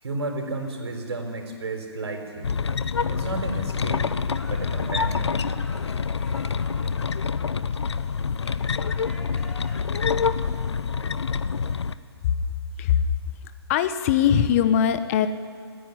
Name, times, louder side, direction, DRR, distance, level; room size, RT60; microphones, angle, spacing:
voice 1, 0.0-2.5 3.1-4.0 4.5-5.3, right 3 dB, 75° right, 3 dB, 4.5 m, -32 dB
sound 1, 2.4-11.9, left 5 dB, 80° left, 0.8 m, -26 dB
sound 2, 3.9-10.3, left 1 dB, 5° left, 2.0 m, -49 dB
voice 2, 13.7-15.3, left 9 dB, 30° left, 11 dB, 1.1 m, -20 dB
29.0 x 10.0 x 10.0 m, 2.2 s
hypercardioid pair, 145°, 14 cm